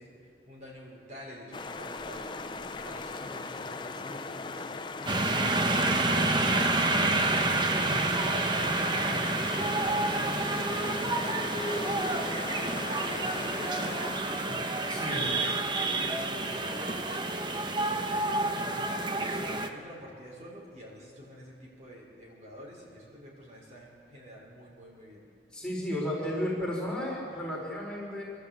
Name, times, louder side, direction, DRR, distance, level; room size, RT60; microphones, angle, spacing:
voice 1, 0.0-25.3, equal, 40° right, -4 dB, 5.5 m, -48 dB
sound 1, 1.5-14.2, left 3 dB, 25° left, 0.7 m, -39 dB
sound 2, 5.1-19.7, right 2 dB, 25° right, 1.0 m, -28 dB
voice 2, 14.9-15.3 25.5-28.2, left 1 dB, 5° left, -5 dB, 4.4 m, -33 dB
27.0 x 13.0 x 8.4 m, 2.4 s
head